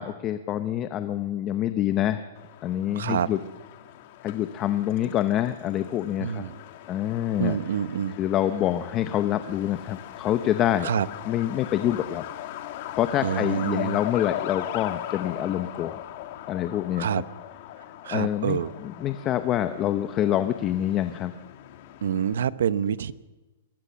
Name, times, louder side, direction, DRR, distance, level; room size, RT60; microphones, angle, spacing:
voice 1, 0.0-2.2 2.6-3.4 4.2-6.4 6.9-7.6 8.2-10.9 11.3-12.3 13.0-16.0 16.5-17.1 18.1-21.3, left 11 dB, 20° left, 10 dB, 0.7 m, -26 dB
Truck, 2.3-22.3, left 13 dB, 40° left, 1.4 m, -39 dB
voice 2, 3.0-3.3 6.2-6.6 7.4-8.2 10.8-11.1 13.2-14.0 17.0-17.2 18.0-18.7 22.0-23.1, right 8 dB, 75° right, 15 dB, 0.9 m, -26 dB
23.0 x 19.0 x 7.0 m, 1.1 s
hypercardioid pair, 170°, 0 cm